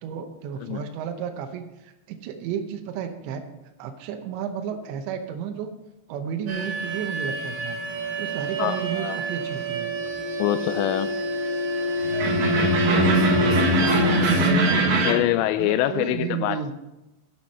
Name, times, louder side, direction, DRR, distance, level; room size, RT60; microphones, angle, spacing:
voice 1, 0.0-3.4 3.8-5.7 6.1-7.8 8.2-9.9 13.0-14.1 14.4-15.2 15.6-16.7, right 7 dB, 80° right, 5 dB, 3.1 m, -32 dB
sound 1, 6.5-15.1, right 1 dB, 60° right, 2.8 m, -23 dB
voice 2, 8.6-9.2 10.4-11.1 15.1-16.7, left 13 dB, 85° left, 12 dB, 2.7 m, -24 dB
10.5 x 9.3 x 5.4 m, 0.98 s
omnidirectional pair, 5.2 m